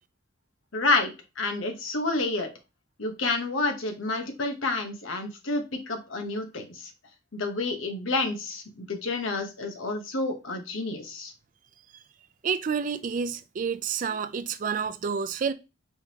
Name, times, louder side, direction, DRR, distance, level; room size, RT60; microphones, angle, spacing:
voice 1, 0.7-2.5 3.0-6.9 7.3-11.3, left 3 dB, 85° left, 1.0 m, -29 dB
voice 2, 12.4-15.5, right 6 dB, 40° right, 0.4 m, -29 dB
4.6 x 3.6 x 2.8 m
head